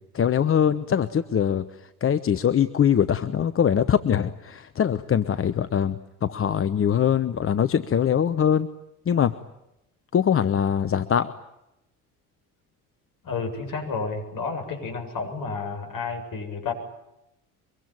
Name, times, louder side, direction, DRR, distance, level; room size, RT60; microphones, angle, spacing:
voice 1, 0.1-1.7 2.0-8.7 9.1-9.3 10.1-11.3, left 8 dB, 30° left, 13 dB, 1.0 m, -22 dB
voice 2, 13.2-16.7, left 4 dB, 45° left, 4 dB, 7.7 m, -31 dB
24.5 x 23.0 x 9.1 m, 0.89 s
figure-of-eight pair, 60°, 45 cm